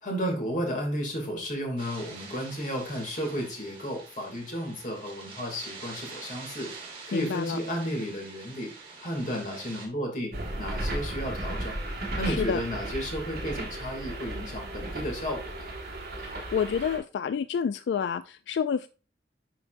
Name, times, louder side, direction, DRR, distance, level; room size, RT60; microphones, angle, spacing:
voice 1, 0.0-6.7 7.1-8.7 9.0-10.3 10.6-11.8 12.2-15.7, equal, 45° left, 0 dB, 2.6 m, -33 dB
sound 1, 1.8-9.9, right 4 dB, 30° right, 2.3 m, -45 dB
voice 2, 7.1-7.6 12.2-12.6 16.2-18.9, left 7 dB, 85° left, 12 dB, 0.3 m, -29 dB
sound 2, 10.3-17.0, right 1 dB, 60° right, 2.0 m, -35 dB
10.5 x 4.6 x 2.6 m, 0.35 s
head